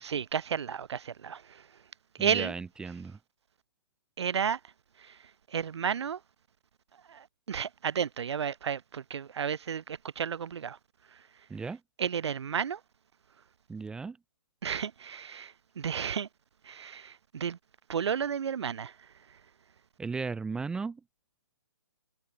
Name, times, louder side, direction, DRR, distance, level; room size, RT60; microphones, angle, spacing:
voice 1, 0.0-1.7 2.2-2.5 4.2-4.7 5.0-6.2 7.1-10.8 11.1-11.2 12.0-12.8 14.6-16.3 16.6-17.6 17.9-19.4, right 7 dB, 70° right, 0.4 m, -33 dB
voice 2, 2.2-3.2 11.5-11.8 13.7-14.2 20.0-21.0, right 4 dB, 5° right, 0.8 m, -36 dB
figure-of-eight pair, 140°, 15 cm